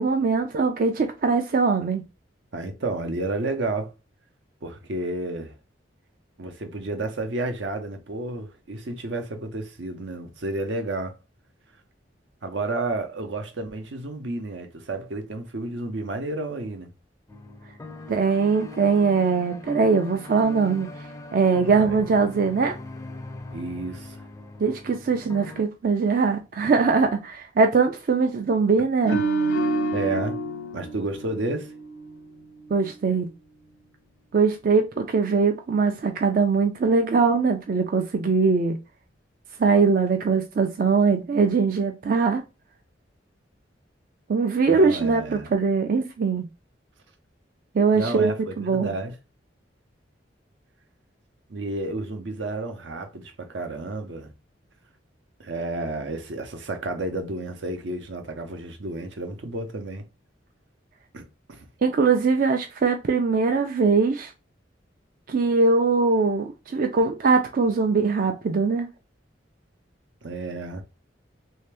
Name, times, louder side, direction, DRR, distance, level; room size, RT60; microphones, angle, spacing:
voice 1, 0.0-2.0 18.1-20.9 21.3-22.8 24.6-29.2 32.7-33.3 34.3-38.8 39.6-42.4 44.3-46.5 47.7-48.9 61.8-64.3 65.3-68.9, right 4 dB, 50° right, 0.4 m, -21 dB
voice 2, 2.5-3.9 4.6-5.6 6.4-11.1 12.4-16.9 21.7-22.0 23.5-24.2 29.1-29.2 29.9-30.4 30.7-31.7 44.7-45.5 47.9-49.2 51.5-54.3 55.4-60.0 61.1-61.7 70.2-70.8, right 2 dB, 75° right, 0.7 m, -31 dB
sound 1, 17.3-25.6, left 2 dB, 15° left, 0.4 m, -40 dB
sound 2, 29.0-32.3 32.6-32.9, right 2 dB, 90° left, 0.6 m, -28 dB
3.3 x 2.7 x 3.3 m
head